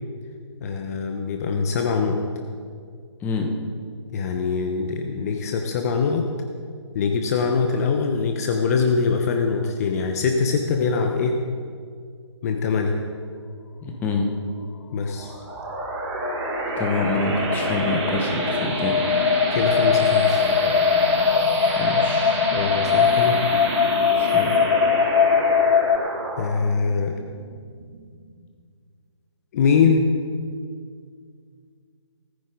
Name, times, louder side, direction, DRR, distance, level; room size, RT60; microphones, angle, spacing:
voice 1, 0.6-2.2 4.1-6.3 6.9-11.4 12.4-13.0 14.9-15.3 19.5-20.4 22.5-23.4 26.4-27.1 29.5-30.0, left 5 dB, 30° left, 3 dB, 1.0 m, -23 dB
voice 2, 3.2-3.5 13.8-14.3 16.8-19.0 21.7-22.4 24.1-24.5, left 3 dB, 10° left, 2 dB, 1.3 m, -26 dB
sound 1, 15.2-28.3, right 2 dB, 30° right, 2.9 m, -29 dB
sound 2, 15.7-26.0, left 7 dB, 55° left, 0.6 m, -21 dB
18.0 x 15.0 x 3.9 m, 2.1 s
figure-of-eight pair, 140°, 15 cm